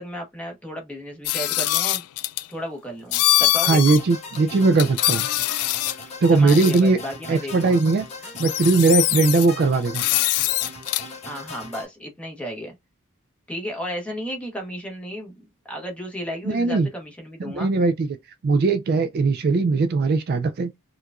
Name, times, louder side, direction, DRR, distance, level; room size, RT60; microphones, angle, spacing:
voice 1, 0.0-2.0 2.5-3.8 6.3-7.8 11.2-12.7 13.5-17.7, equal, 5° left, 1.1 m, -33 dB
sound 1, 1.2-2.5 3.1-4.0 4.3-4.4 4.8-6.0 6.5-6.8 7.8-7.9 8.2-9.5 9.9-11.1, left 15 dB, 80° left, 0.3 m, -23 dB
voice 2, 3.6-5.3 6.2-7.0 7.3-8.1 8.3-10.0 16.5-16.9 17.4-18.1 18.4-20.7, right 3 dB, 45° right, 0.3 m, -19 dB
sound 2, 3.9-11.9, left 3 dB, 30° left, 1.2 m, -39 dB
4.5 x 2.4 x 2.4 m
head